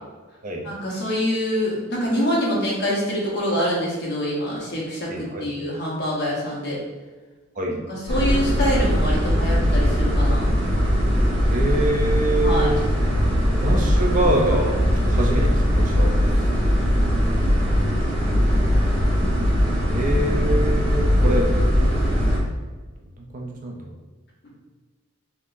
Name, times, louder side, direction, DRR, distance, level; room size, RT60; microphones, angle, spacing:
voice 1, 0.6-6.8 7.7-10.5 12.4-12.7, equal, 50° left, -4 dB, 0.9 m, -25 dB
voice 2, 5.1-5.5 7.6-7.8 11.5-12.7 13.5-16.5 19.9-21.5 23.3-23.9, right 1 dB, 40° right, 0 dB, 0.4 m, -25 dB
sound 1, 8.1-22.4, equal, 65° right, 1.3 m, -20 dB
3.6 x 2.8 x 2.5 m, 1.3 s
head